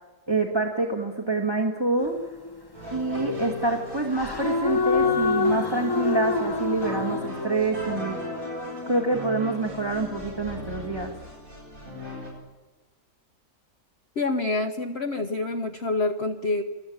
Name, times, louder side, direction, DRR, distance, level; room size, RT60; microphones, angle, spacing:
voice 1, 0.3-2.1 2.9-8.2 8.9-11.1, right 3 dB, 15° right, 1 dB, 2.1 m, -26 dB
sound 1, 2.0-2.7 4.1-7.3, left 4 dB, 15° left, 1.2 m, -26 dB
sound 2, 2.7-12.3, left 2 dB, 65° right, 8.2 m, -36 dB
voice 2, 14.2-16.6, left 3 dB, 45° left, 5 dB, 1.4 m, -27 dB
29.0 x 20.0 x 8.9 m, 1.2 s
omnidirectional pair, 1.6 m